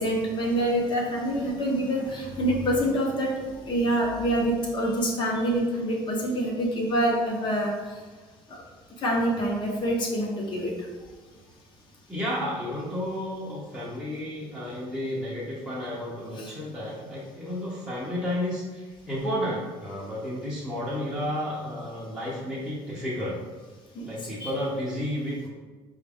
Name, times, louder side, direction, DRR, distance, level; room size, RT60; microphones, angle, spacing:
voice 1, 0.0-3.3 3.7-7.7 9.0-10.7 16.4-16.5 23.9-24.0 24.4-24.5, right 1 dB, 40° left, -1 dB, 0.9 m, -26 dB
voice 2, 12.1-23.4 24.0-25.5, left 1 dB, ahead, -10 dB, 0.7 m, -32 dB
5.1 x 2.4 x 3.5 m, 1.3 s
cardioid pair, 150°, 12 cm